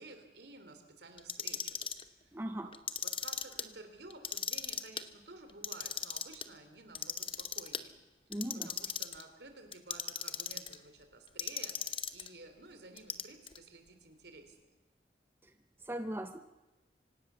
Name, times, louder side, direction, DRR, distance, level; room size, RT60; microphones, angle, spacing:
voice 1, 0.0-1.8 2.0-2.4 2.6-2.8 3.0-8.0 8.6-14.6, right 2 dB, 65° right, 7 dB, 3.3 m, -53 dB
Clock, 1.2-2.0 2.7-3.6 4.1-5.0 5.5-6.4 7.0-7.8 8.3-9.2 9.7-10.8 11.4-12.3 13.0-13.6, left 8 dB, 30° left, 1.0 m, -37 dB
voice 2, 2.3-2.7 8.3-8.7 15.4-15.5 15.8-16.4, right 1 dB, 10° right, 8 dB, 0.7 m, -39 dB
25.0 x 18.0 x 6.9 m, 1.1 s
head